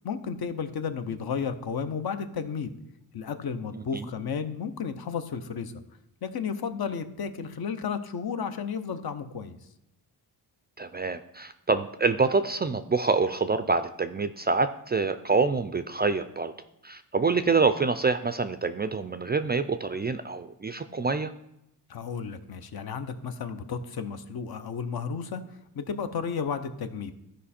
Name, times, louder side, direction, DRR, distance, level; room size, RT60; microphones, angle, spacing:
voice 1, 0.0-2.7 3.1-5.7 6.2-9.6 21.9-25.4 25.7-27.1, left 6 dB, 60° left, 9 dB, 0.8 m, -33 dB
voice 2, 3.7-4.1 10.8-16.5 16.8-21.3, right 4 dB, 25° right, 11 dB, 0.3 m, -26 dB
13.5 x 5.2 x 4.3 m, 0.82 s
wide cardioid pair, 115°, 42 cm